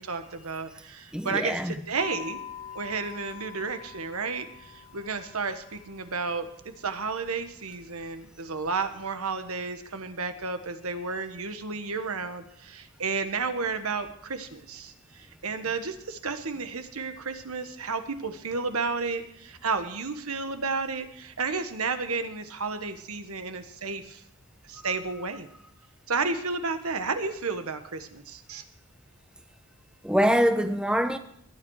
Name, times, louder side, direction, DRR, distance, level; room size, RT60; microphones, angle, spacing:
voice 1, 0.0-2.4 2.7-6.5 6.8-24.2 24.6-25.5 26.1-28.6, right 4 dB, 90° right, 1.4 m, -32 dB
voice 2, 1.1-1.7 24.8-24.9 30.0-31.2, equal, 5° right, 0.8 m, -24 dB
sound 1, 1.9-8.9, left 9 dB, 85° left, 1.5 m, -46 dB
20.5 x 9.3 x 4.8 m
head